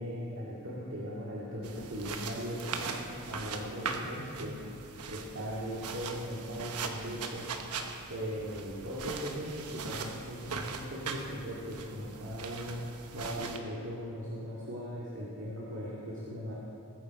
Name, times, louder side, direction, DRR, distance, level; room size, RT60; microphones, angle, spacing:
voice 1, 0.0-4.6 5.1-7.4 8.1-12.8 13.1-16.5, equal, 60° right, -6 dB, 2.2 m, -39 dB
sound 1, 1.6-13.6, right 5 dB, 80° right, 1.1 m, -40 dB
20.5 x 9.3 x 4.2 m, 2.8 s
head